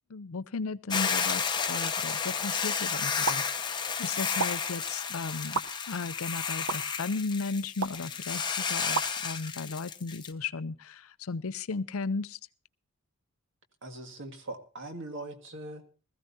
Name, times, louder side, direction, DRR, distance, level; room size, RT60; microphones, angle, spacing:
voice 1, 0.1-12.4, left 4 dB, 75° left, 0.6 m, -35 dB
Hiss / Boiling, 0.9-10.3, left 6 dB, 20° left, 0.8 m, -32 dB
sound 1, 3.3-3.4 4.4-4.5 5.5-5.6 6.7-6.8 7.8-8.0 8.9-9.1, right 4 dB, 85° right, 1.0 m, -29 dB
voice 2, 13.8-15.8, right 2 dB, 60° right, 1.9 m, -41 dB
19.5 x 14.5 x 2.7 m
head